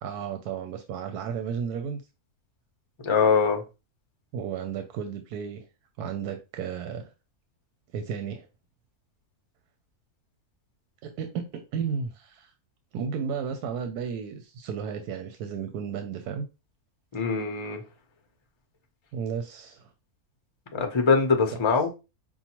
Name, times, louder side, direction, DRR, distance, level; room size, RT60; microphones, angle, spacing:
voice 1, 0.0-2.0 4.3-5.6 6.0-7.1 7.9-8.5 11.0-12.5 12.9-16.5 19.1-19.9 21.4-21.5, right 7 dB, 85° right, 1.1 m, -33 dB
voice 2, 3.0-3.6 17.1-17.8 20.7-21.9, left 5 dB, 35° left, 0.5 m, -23 dB
5.4 x 2.3 x 2.9 m
omnidirectional pair, 1.6 m